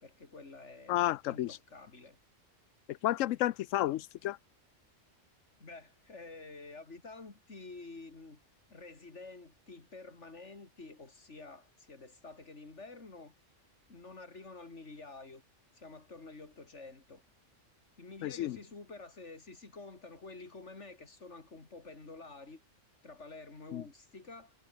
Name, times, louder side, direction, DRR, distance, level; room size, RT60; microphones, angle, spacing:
voice 1, 0.0-1.0 1.2-2.2 5.6-8.4 8.7-13.3 13.9-15.4 15.7-17.2 18.0-22.6 23.0-24.5, left 3 dB, 65° left, 3.5 m, -49 dB
voice 2, 0.9-1.6 2.9-4.4 18.2-18.6 23.7-23.8, left 14 dB, 85° left, 0.9 m, -31 dB
omnidirectional pair, 1.3 m